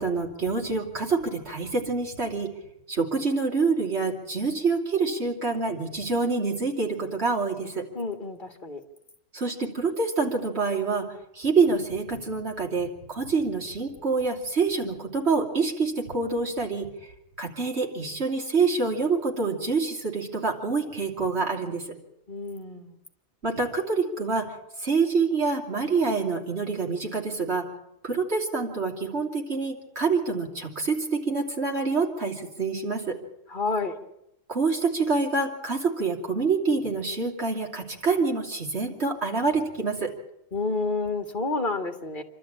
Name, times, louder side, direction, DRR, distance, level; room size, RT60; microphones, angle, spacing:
voice 1, 0.0-2.5 2.9-7.8 9.3-11.1 11.3-16.9 17.4-21.8 23.4-24.5 24.8-27.6 28.0-33.2 34.5-40.1, right 4 dB, 50° right, 0 dB, 3.3 m, -26 dB
voice 2, 7.9-8.8 22.3-23.0 33.5-34.0 40.5-42.2, left 3 dB, 35° left, 5 dB, 2.0 m, -29 dB
27.0 x 12.5 x 8.8 m, 0.83 s
omnidirectional pair, 1.4 m